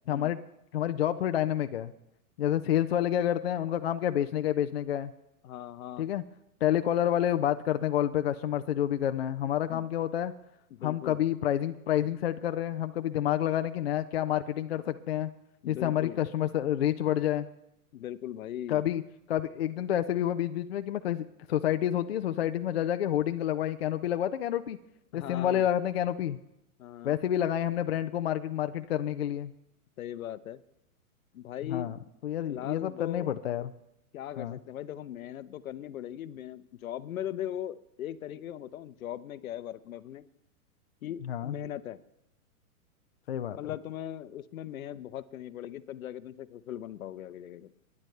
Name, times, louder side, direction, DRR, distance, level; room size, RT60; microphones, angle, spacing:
voice 1, 0.1-0.4 0.7-1.9 2.4-5.1 6.0-6.2 6.6-10.3 10.8-15.3 15.7-17.5 18.7-19.0 19.3-24.8 25.1-26.4 27.0-29.5 31.7-32.0 32.2-33.7 34.4-34.6 41.2-41.5 43.3-43.6, left 11 dB, 45° left, 9 dB, 0.4 m, -29 dB
voice 2, 5.4-6.1 9.7-9.9 10.7-11.2 15.6-16.2 17.9-18.8 25.1-25.6 26.8-27.2 30.0-30.6 31.3-31.9 32.5-33.4 34.1-40.2 41.0-42.0 43.6-47.7, left 11 dB, 65° left, 15 dB, 0.8 m, -39 dB
29.0 x 10.5 x 3.3 m, 0.83 s
hypercardioid pair, 160°, 45 cm